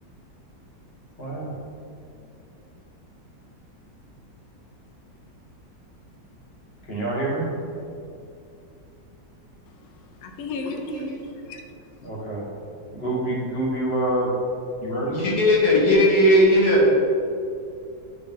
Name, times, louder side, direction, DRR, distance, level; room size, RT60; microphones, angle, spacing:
voice 1, 6.8-7.5 10.8-11.2 12.0-12.4 12.9-14.3 14.8-15.2, right 1 dB, 35° left, -5 dB, 1.8 m, -27 dB
voice 2, 9.7-12.1, left 4 dB, 85° left, 4 dB, 0.7 m, -37 dB
voice 3, 15.1-16.9, equal, 60° left, -4 dB, 1.8 m, -17 dB
9.2 x 3.9 x 3.7 m, 2.5 s
omnidirectional pair, 2.1 m